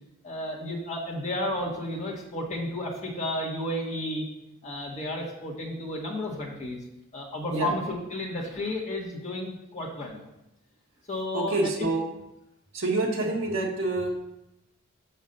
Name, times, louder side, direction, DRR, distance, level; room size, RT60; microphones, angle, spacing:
voice 1, 0.2-4.3 4.6-6.8 7.1-10.2 11.1-11.9, left 1 dB, 35° left, -3 dB, 1.6 m, -32 dB
voice 2, 11.3-12.1 12.7-14.1, right 2 dB, 65° right, -1 dB, 1.7 m, -27 dB
6.2 x 5.6 x 6.5 m, 0.89 s
head